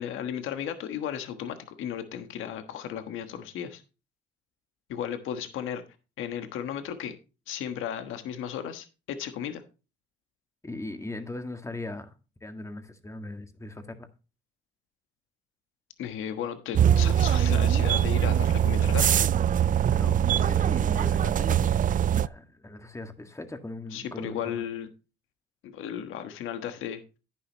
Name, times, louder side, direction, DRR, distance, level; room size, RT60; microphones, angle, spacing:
voice 1, 0.0-3.8 4.9-5.8 6.2-7.1 7.5-9.6 16.0-19.2 23.9-24.9 25.6-27.2, left 9 dB, 85° left, 1.3 m, -35 dB
voice 2, 10.6-12.1 12.4-14.1 19.9-24.7, left 2 dB, 15° left, 1.8 m, -39 dB
sound 1, 16.7-22.3, right 9 dB, 45° right, 0.4 m, -22 dB
10.5 x 10.0 x 2.9 m
cardioid pair, 90°, 20 cm